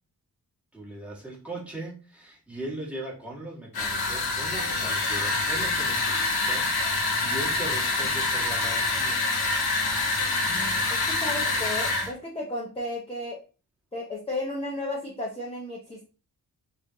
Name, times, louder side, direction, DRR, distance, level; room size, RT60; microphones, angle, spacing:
voice 1, 0.7-9.3, right 1 dB, 5° right, -5 dB, 1.4 m, -39 dB
sound 1, 3.7-12.1, left 3 dB, 75° left, 1.0 m, -26 dB
voice 2, 10.5-13.4 13.9-16.1, left 1 dB, 15° left, -5 dB, 0.9 m, -34 dB
3.7 x 3.3 x 2.7 m, 0.34 s
wide cardioid pair, 120°, 38 cm